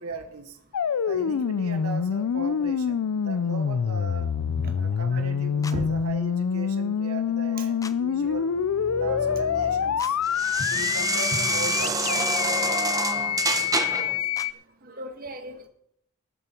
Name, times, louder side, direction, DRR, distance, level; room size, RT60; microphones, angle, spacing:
voice 1, 0.0-0.6 1.1-4.3 4.8-8.5 8.9-10.2 10.7-13.3, right 3 dB, 75° right, 8 dB, 1.0 m, -38 dB
sound 1, 0.7-14.5, left 7 dB, 80° left, 0.4 m, -26 dB
sound 2, 5.6-5.8 7.8-8.0 10.0-10.1 12.2-12.3 14.3-14.5, left 4 dB, 15° left, 0.5 m, -39 dB
sound 3, 8.3-14.2, right 3 dB, 15° right, 0.8 m, -29 dB
voice 2, 13.9-14.2 14.8-15.7, right 1 dB, 40° right, 6 dB, 1.5 m, -36 dB
19.5 x 7.1 x 4.4 m, 0.68 s
head